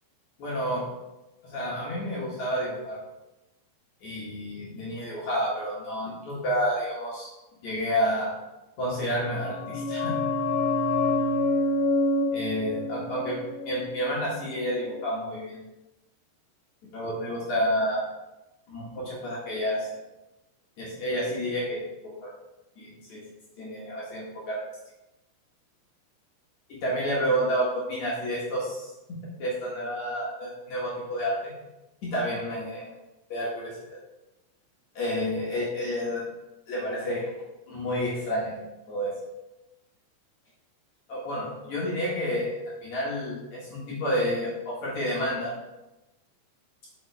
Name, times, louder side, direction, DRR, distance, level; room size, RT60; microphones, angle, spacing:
voice 1, 0.4-0.8 1.5-3.0 4.0-7.3 7.6-8.3 8.8-10.1 12.3-13.4 13.7-15.6 16.9-18.0 18.7-19.9 20.8-21.8 22.2-22.3 22.8-23.2 23.6-24.6 26.7-28.9 29.4-31.5 32.0-32.9 33.3-33.8 34.9-36.2 36.7-37.2 37.7-38.6 38.9-39.1 41.1-45.5, equal, 55° left, -5 dB, 2.2 m, -29 dB
sound 1, 9.2-14.6 14.9-15.0, left 2 dB, 80° left, 2.6 m, -27 dB
7.7 x 5.8 x 3.4 m, 0.98 s
omnidirectional pair, 5.0 m